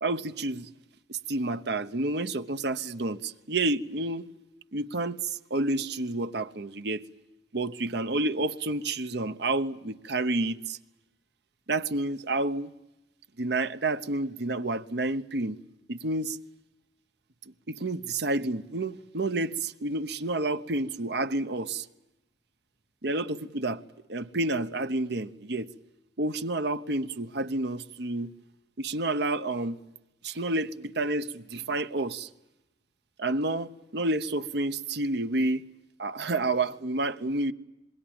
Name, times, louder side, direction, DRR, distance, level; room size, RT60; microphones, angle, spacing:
voice 1, 0.0-0.7 1.1-4.2 4.7-7.0 7.5-10.8 11.7-12.7 13.4-15.6 15.9-16.4 17.7-21.9 23.0-23.8 24.1-25.7 26.2-28.3 28.8-29.8 30.2-32.3 33.2-35.6 36.0-37.5, right 2 dB, 65° right, 1.0 m, -29 dB
26.5 x 21.5 x 8.9 m
head